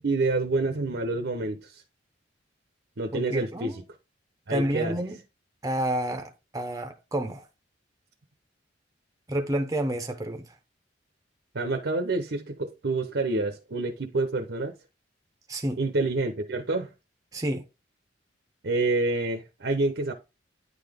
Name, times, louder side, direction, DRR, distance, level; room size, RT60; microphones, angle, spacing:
voice 1, 0.0-1.8 3.0-3.8 4.5-5.0 11.5-14.7 15.8-16.9 18.6-20.1, right 2 dB, 70° right, 0.8 m, -27 dB
voice 2, 3.1-3.8 4.5-5.2 5.6-7.4 9.3-10.4 15.5-15.8 17.3-17.6, right 1 dB, 20° right, 0.6 m, -29 dB
9.5 x 3.9 x 3.5 m
head